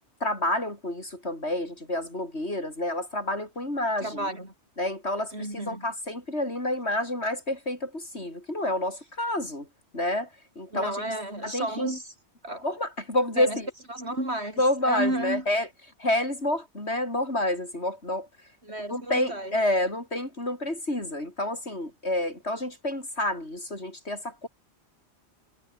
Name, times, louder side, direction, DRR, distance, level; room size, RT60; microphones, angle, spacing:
voice 1, 0.2-4.3 4.8-9.7 9.9-10.3 10.6-11.0 11.4-11.9 12.6-13.7 14.6-15.7 16.0-18.3 18.9-24.5, left 1 dB, 65° left, 7.6 m, -29 dB
voice 2, 4.0-4.5 5.3-5.8 10.7-12.1 12.4-12.6 13.4-13.6 13.9-15.4 18.6-19.6, right 1 dB, 60° right, 7.8 m, -32 dB
omnidirectional pair, 1.2 m